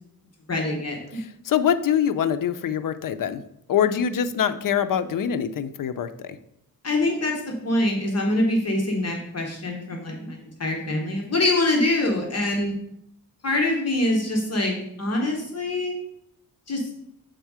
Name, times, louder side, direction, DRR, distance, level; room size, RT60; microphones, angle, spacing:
voice 1, 0.5-1.0 6.8-12.7 13.4-15.9 16.7-16.8, left 1 dB, 45° left, 0 dB, 0.9 m, -24 dB
voice 2, 1.5-3.4 3.7-6.4, left 8 dB, 65° left, 11 dB, 0.5 m, -24 dB
6.7 x 3.6 x 4.7 m, 0.74 s
wide cardioid pair, 175°, 35 cm